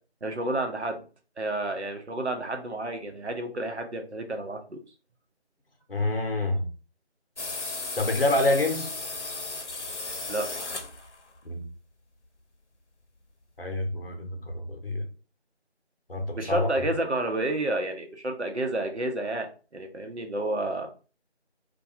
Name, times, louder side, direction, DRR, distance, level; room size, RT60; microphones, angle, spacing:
voice 1, 0.2-1.0 1.4-4.8 10.3-10.5 16.4-19.5 19.7-20.9, right 1 dB, 75° right, 0.7 m, -30 dB
voice 2, 5.9-6.7 8.0-8.9 11.4-11.7 13.6-15.1 16.1-16.7, left 2 dB, 55° left, 0.7 m, -27 dB
sound 1, 7.4-11.4, left 3 dB, 90° left, 0.7 m, -35 dB
2.4 x 2.3 x 2.7 m
figure-of-eight pair, 170°, 34 cm